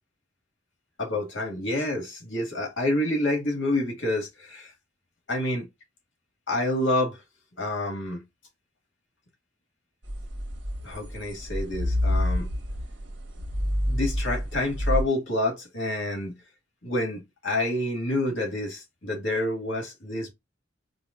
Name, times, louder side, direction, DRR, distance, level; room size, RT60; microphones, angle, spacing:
voice 1, 1.0-4.7 5.3-5.7 6.5-7.2 7.6-8.2 10.8-12.5 13.9-16.4 16.8-20.3, left 1 dB, 90° left, 1.8 m, -28 dB
sound 1, 10.1-15.0, left 1 dB, 80° right, 1.1 m, -28 dB
5.0 x 2.3 x 2.4 m
head